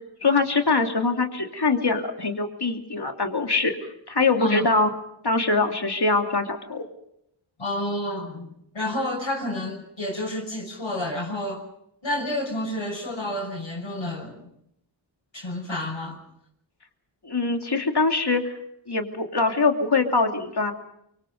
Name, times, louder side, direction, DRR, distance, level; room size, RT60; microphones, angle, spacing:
voice 1, 0.2-3.8 4.1-4.9 5.2-6.9 17.2-18.5 18.9-20.7, left 3 dB, 55° left, 4 dB, 2.8 m, -23 dB
voice 2, 7.6-8.5 8.7-11.6 12.0-14.4 15.3-16.2, left 1 dB, 70° left, -1 dB, 6.0 m, -30 dB
24.5 x 24.0 x 5.3 m, 0.77 s
wide cardioid pair, 45°, 48 cm